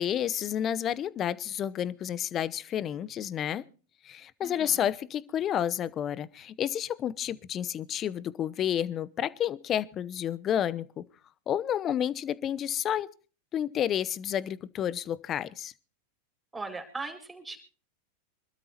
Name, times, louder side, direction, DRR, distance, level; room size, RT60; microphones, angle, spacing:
voice 1, 0.0-3.6 4.0-11.0 11.5-13.1 13.5-15.7, left 10 dB, 35° left, 0.8 m, -30 dB
voice 2, 4.4-4.9 16.5-17.6, right 3 dB, 10° right, 4.8 m, -39 dB
25.5 x 13.0 x 3.0 m
hypercardioid pair, 95°, 0 cm